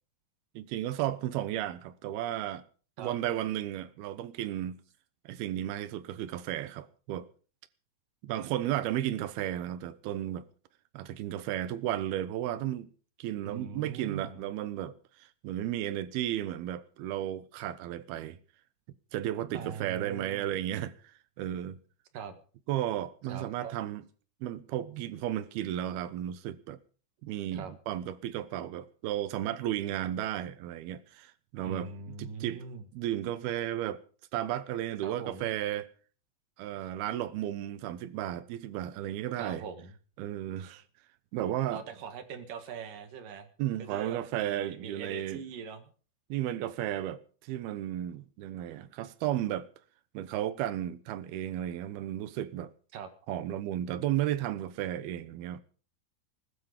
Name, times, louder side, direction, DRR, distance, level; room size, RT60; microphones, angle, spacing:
voice 1, 0.6-2.6 3.0-4.8 5.3-7.3 8.2-10.4 10.9-12.9 13.2-14.9 15.2-18.4 19.1-20.9 21.4-21.8 22.7-24.0 24.4-26.8 27.2-32.6 32.9-34.0 34.3-35.9 36.6-39.6 40.2-40.8 41.3-41.8 43.6-45.4 46.3-49.7 50.1-52.7 53.3-55.6, right 12 dB, 90° right, 2.9 m, -34 dB
voice 2, 13.4-14.4 19.5-20.5 22.1-22.4 23.3-23.8 27.5-27.7 31.7-32.8 35.0-35.5 39.4-39.9 41.7-43.5 43.8-45.9 52.9-53.1, right 6 dB, 65° right, 3.1 m, -42 dB
20.0 x 12.5 x 5.1 m
omnidirectional pair, 4.4 m